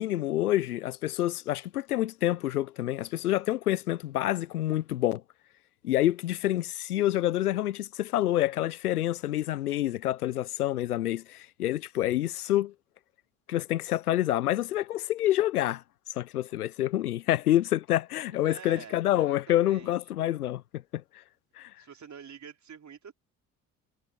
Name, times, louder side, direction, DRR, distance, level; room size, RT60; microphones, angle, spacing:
voice 1, 0.0-5.2 5.8-12.7 13.5-15.8 16.1-21.0 21.6-21.7, left 13 dB, 80° left, 0.9 m, -27 dB
voice 2, 18.3-20.0 21.8-23.1, right 7 dB, 40° right, 4.4 m, -47 dB
figure-of-eight pair, 50°, 44 cm